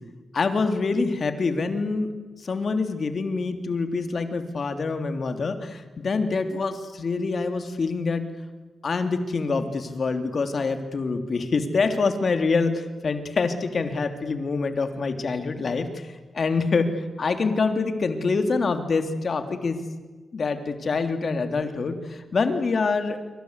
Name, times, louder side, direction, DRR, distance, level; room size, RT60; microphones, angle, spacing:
voice 1, 0.3-2.1 2.4-8.2 8.8-19.8 20.3-23.2, left 4 dB, 55° left, 8 dB, 3.1 m, -25 dB
26.5 x 24.5 x 8.2 m, 1.3 s
supercardioid pair, 50°, 0 cm